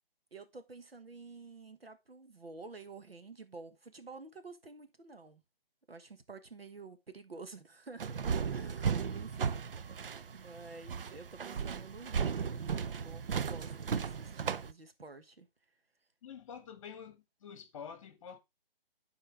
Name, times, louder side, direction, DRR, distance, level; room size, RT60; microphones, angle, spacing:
voice 1, 0.3-5.4 5.9-8.2 8.5-10.0 10.3-15.5, right 3 dB, 90° right, 1.3 m, -50 dB
sound 1, 8.0-14.7, right 6 dB, 70° right, 0.6 m, -35 dB
voice 2, 16.2-18.4, left 7 dB, 35° left, 1.2 m, -48 dB
11.5 x 4.4 x 3.4 m
figure-of-eight pair, 145°, 29 cm